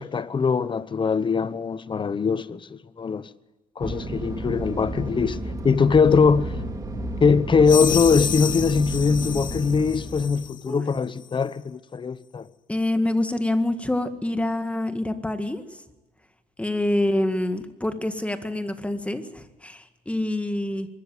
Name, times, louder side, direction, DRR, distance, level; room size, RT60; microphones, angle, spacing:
voice 1, 0.0-3.3 3.8-5.4 5.6-6.5 7.2-12.5, left 5 dB, 30° left, 1.0 m, -21 dB
Fixed-wing aircraft airplane, 3.8-10.5, right 1 dB, 20° right, 3.4 m, -32 dB
sound 1, 7.6-10.6, left 8 dB, 50° left, 2.1 m, -31 dB
voice 2, 12.7-15.8 16.6-20.9, left 1 dB, 5° left, 1.8 m, -26 dB
24.0 x 13.5 x 9.3 m
cardioid pair, 110°, 17 cm